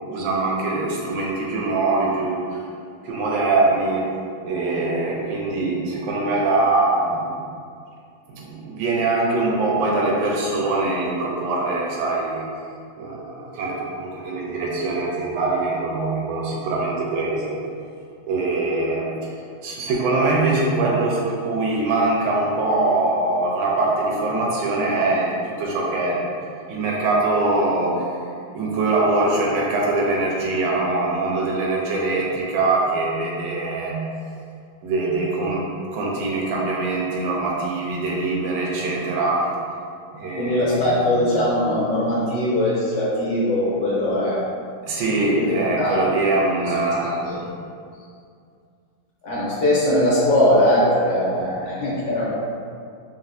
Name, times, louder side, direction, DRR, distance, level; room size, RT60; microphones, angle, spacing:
voice 1, 0.1-2.6 3.0-4.1 4.4-7.3 8.3-12.5 13.0-17.6 18.3-19.1 19.6-26.2 26.7-28.0 28.5-34.0 34.8-39.6 40.1-40.9 44.9-47.3, right 2 dB, 80° right, -3 dB, 1.3 m, -23 dB
voice 2, 40.3-44.4 45.1-46.0 47.2-47.4 49.2-52.3, left 1 dB, 70° left, -8 dB, 1.7 m, -21 dB
4.0 x 2.2 x 2.6 m, 2.3 s
omnidirectional pair, 2.1 m